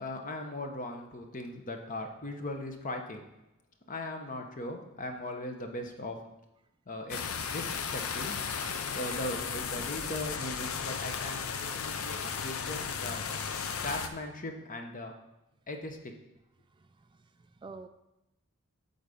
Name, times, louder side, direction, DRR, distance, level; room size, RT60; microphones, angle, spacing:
voice 1, 0.0-3.2 3.9-6.2 6.9-8.4 8.9-13.2 13.8-15.1 15.7-16.1, left 1 dB, 40° left, 4 dB, 1.0 m, -39 dB
sound 1, 7.1-14.1, left 6 dB, 80° left, 0.6 m, -35 dB
voice 2, 16.6-17.9, right 3 dB, 25° right, 9 dB, 0.3 m, -50 dB
8.6 x 4.0 x 7.0 m, 0.91 s
head